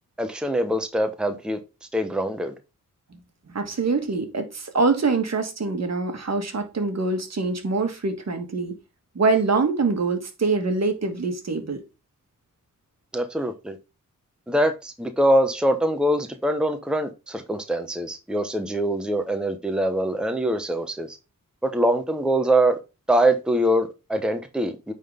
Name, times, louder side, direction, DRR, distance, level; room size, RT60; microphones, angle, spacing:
voice 1, 0.2-1.6 1.9-2.5 13.1-13.8 14.5-21.2 21.6-22.8 23.1-24.9, right 1 dB, 5° right, 0.9 m, -23 dB
voice 2, 3.5-8.7 9.1-11.8, right 4 dB, 50° right, 1.7 m, -24 dB
9.2 x 3.9 x 3.5 m
cardioid pair, 80°, 33 cm